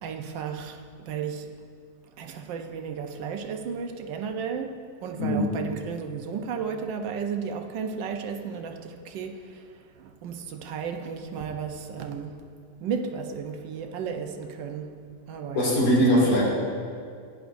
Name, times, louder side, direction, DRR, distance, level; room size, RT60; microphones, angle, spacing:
voice 1, 0.0-1.5 2.0-12.5 12.8-16.3, right 6 dB, 90° right, 5 dB, 1.5 m, -34 dB
voice 2, 15.5-16.4, equal, 75° left, -6 dB, 3.2 m, -21 dB
15.0 x 10.5 x 2.6 m, 2.2 s
omnidirectional pair, 1.9 m